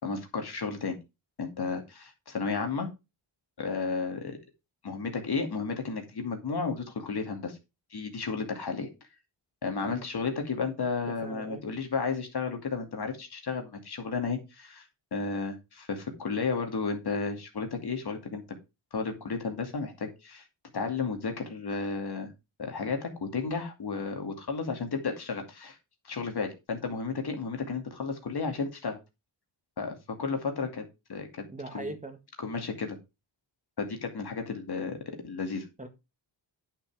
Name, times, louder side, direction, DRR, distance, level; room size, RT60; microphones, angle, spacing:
voice 1, 0.0-1.0 1.4-2.9 3.6-4.4 4.8-7.6 7.9-8.9 9.6-14.9 15.1-18.4 18.9-20.4 20.7-22.3 22.6-25.8 26.0-29.0 29.8-31.5 31.7-31.9 32.4-33.0 33.8-35.0 35.2-35.7, left 4 dB, 55° left, 2.5 m, -33 dB
voice 2, 11.1-11.6 31.5-32.2 35.8-35.9, right 2 dB, 15° right, 1.7 m, -40 dB
9.9 x 6.3 x 4.8 m
wide cardioid pair, 100°, 46 cm